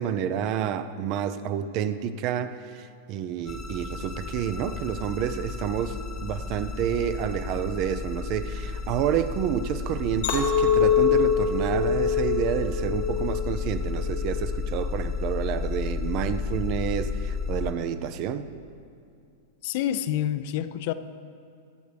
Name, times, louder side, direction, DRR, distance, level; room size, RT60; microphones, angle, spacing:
voice 1, 0.0-18.5, right 9 dB, 45° right, 12 dB, 0.6 m, -29 dB
sound 1, 3.5-17.7, left 5 dB, 25° left, 1.1 m, -32 dB
Chink clink, 10.2-14.6 15.0-15.5, left 7 dB, 90° left, 1.9 m, -25 dB
voice 2, 19.6-20.9, left 11 dB, 60° left, 11 dB, 0.6 m, -27 dB
22.5 x 8.1 x 3.4 m, 2.4 s
hypercardioid pair, 130°, 0 cm